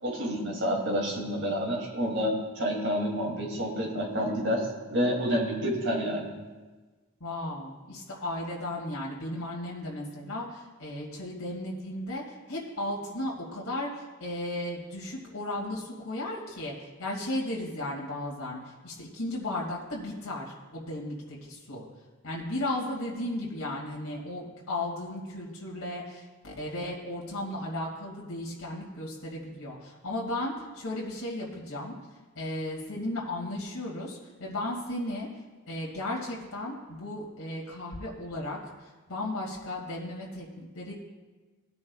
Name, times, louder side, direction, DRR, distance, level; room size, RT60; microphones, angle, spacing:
voice 1, 0.0-2.3 2.6-4.6 4.9-6.3, equal, 55° right, -2 dB, 2.9 m, -28 dB
voice 2, 7.2-21.8 22.2-31.9 32.4-40.9, left 1 dB, 75° left, -4 dB, 2.4 m, -35 dB
18.5 x 9.6 x 2.4 m, 1.3 s
head